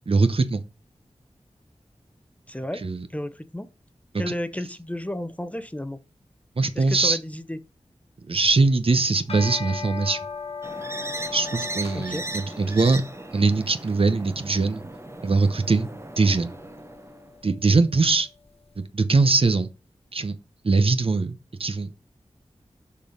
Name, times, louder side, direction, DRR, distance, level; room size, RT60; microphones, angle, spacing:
voice 1, 0.1-0.6 2.8-3.1 6.6-7.2 8.3-10.2 11.3-13.0 13.3-14.8 15.2-15.9 16.2-16.5 17.4-18.3 18.8-19.7 20.1-20.4 20.6-22.1, right 3 dB, 55° right, 0.8 m, -22 dB
voice 2, 2.5-2.8 3.1-3.7 4.2-6.0 6.7-7.6 11.9-12.2, left 1 dB, 10° left, 0.7 m, -32 dB
sound 1, 9.1-18.5, left 5 dB, 60° left, 1.0 m, -39 dB
sound 2, 10.6-17.4, right 2 dB, 25° right, 0.7 m, -37 dB
6.6 x 5.4 x 5.1 m
wide cardioid pair, 80°, 11 cm